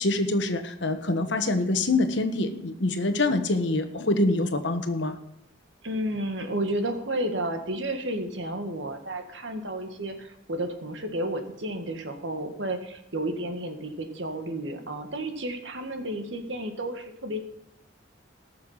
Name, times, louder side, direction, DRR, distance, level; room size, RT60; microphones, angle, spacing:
voice 1, 0.0-5.2, left 2 dB, 65° left, 8 dB, 1.3 m, -25 dB
voice 2, 5.8-17.5, right 1 dB, 70° right, 5 dB, 1.8 m, -32 dB
18.5 x 6.7 x 5.7 m, 0.80 s
head